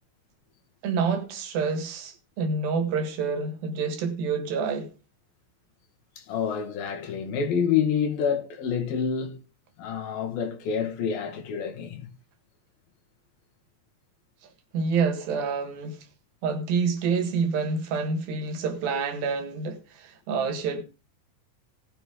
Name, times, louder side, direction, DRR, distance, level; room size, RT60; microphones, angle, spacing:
voice 1, 0.8-4.9 14.7-16.1 16.4-20.8, right 5 dB, 85° right, 3.6 m, -28 dB
voice 2, 6.2-9.4 9.8-12.1, left 7 dB, 85° left, 3.7 m, -28 dB
18.0 x 8.2 x 3.8 m
omnidirectional pair, 4.1 m